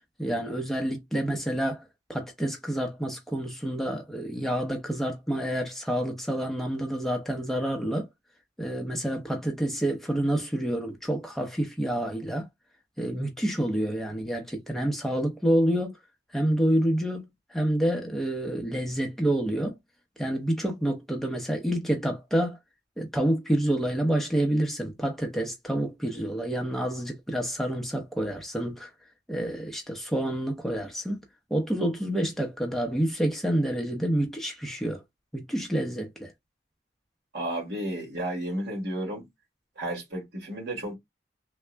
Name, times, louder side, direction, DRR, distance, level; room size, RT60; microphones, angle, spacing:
voice 1, 0.2-1.8 2.1-8.1 8.6-12.5 13.0-16.0 16.3-19.8 20.2-22.6 23.0-28.9 29.3-31.2 31.5-35.0 35.3-36.3, right 1 dB, ahead, 0.6 m, -28 dB
voice 2, 37.3-39.3 39.8-41.0, right 1 dB, 65° right, 1.7 m, -32 dB
3.4 x 2.0 x 3.2 m
head